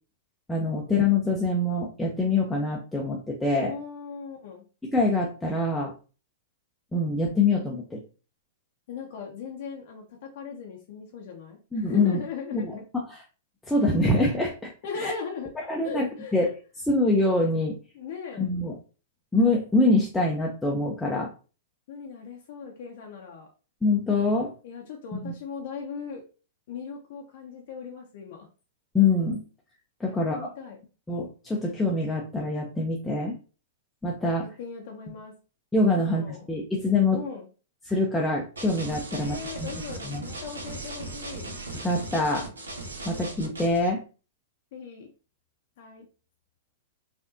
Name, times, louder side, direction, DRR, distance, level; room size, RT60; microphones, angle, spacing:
voice 1, 0.5-3.7 4.8-5.9 6.9-8.0 11.7-12.2 12.5-12.7 13.1-13.2 13.7-15.1 15.6-16.1 16.3-16.5 16.8-17.8 18.4-18.7 19.3-21.3 23.8-24.5 25.1-25.3 28.9-29.4 30.0-30.5 31.1-33.4 34.0-34.4 35.7-37.2 37.8-39.4 40.0-40.2 41.8-42.5 43.0-44.0, left 2 dB, 5° left, -2 dB, 0.6 m, -25 dB
voice 2, 3.6-4.6 8.9-12.8 14.8-15.5 15.8-16.3 17.9-18.5 21.9-23.5 24.6-26.2 26.7-28.5 30.1-30.9 34.4-35.3 35.9-36.5 37.1-37.5 39.1-41.5 44.7-45.1 45.8-46.0, left 6 dB, 55° left, 0 dB, 0.7 m, -38 dB
sound 1, 38.6-43.9, right 2 dB, 80° right, 0.9 m, -38 dB
4.7 x 2.6 x 2.6 m, 0.36 s
figure-of-eight pair, 105°, 0 cm